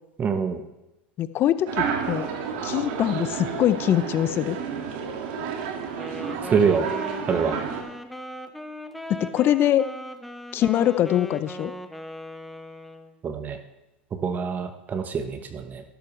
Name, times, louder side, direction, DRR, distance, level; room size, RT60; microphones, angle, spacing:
voice 1, 0.2-0.6 6.5-6.9 7.3-7.6 13.2-13.6 14.2-15.8, right 6 dB, 30° right, 7 dB, 1.1 m, -25 dB
voice 2, 1.2-2.3 2.6-4.6 9.1-9.9 10.5-11.7, left 11 dB, 40° left, 15 dB, 0.6 m, -23 dB
sound 1, 1.7-7.8, right 6 dB, 65° right, 1.9 m, -31 dB
Wind instrument woodwind instrument, 5.9-13.2, left 1 dB, ahead, 1.0 m, -38 dB
12.5 x 12.0 x 3.2 m, 0.93 s
hypercardioid pair, 95°, 6 cm